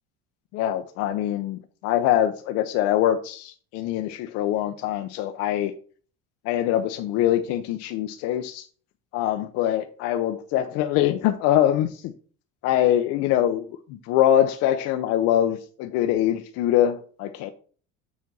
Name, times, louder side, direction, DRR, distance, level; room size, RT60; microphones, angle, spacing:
voice 1, 0.5-5.7 6.4-8.6 9.1-12.1 12.6-17.5, left 11 dB, 55° left, 6 dB, 0.7 m, -23 dB
7.3 x 4.1 x 6.0 m, 0.42 s
cardioid pair, 175°, 29 cm